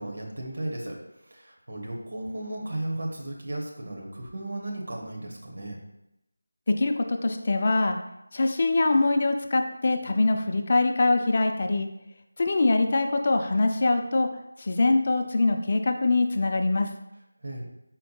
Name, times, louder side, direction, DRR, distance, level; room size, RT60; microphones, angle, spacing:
voice 1, 0.0-5.8 17.4-17.7, right 1 dB, 60° right, 0 dB, 1.1 m, -35 dB
voice 2, 6.7-8.0 8.3-11.9 12.4-16.9, left 2 dB, 40° left, 5 dB, 0.3 m, -23 dB
4.3 x 3.7 x 2.8 m, 0.85 s
figure-of-eight pair, 170°, 0 cm